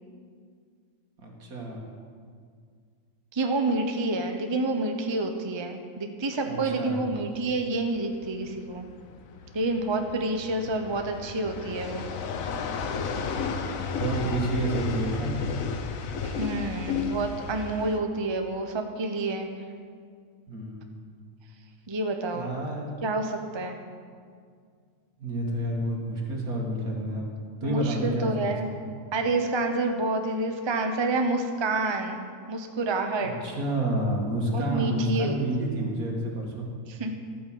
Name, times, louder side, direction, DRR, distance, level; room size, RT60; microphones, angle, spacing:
voice 1, 1.2-1.8 6.5-7.0 14.0-15.3 20.5-20.9 22.3-22.9 25.2-27.3 27.6-28.7 33.4-36.7, right 1 dB, 70° right, -1 dB, 2.6 m, -29 dB
voice 2, 3.3-8.9 9.5-12.0 16.2-19.5 21.9-22.5 23.0-23.8 27.6-28.7 29.1-33.3 34.5-35.4 36.9-37.1, right 2 dB, 20° right, 5 dB, 0.8 m, -28 dB
sound 1, 7.1-18.0, left 5 dB, 65° left, 1.2 m, -33 dB
12.5 x 9.0 x 7.7 m, 2.1 s
omnidirectional pair, 1.6 m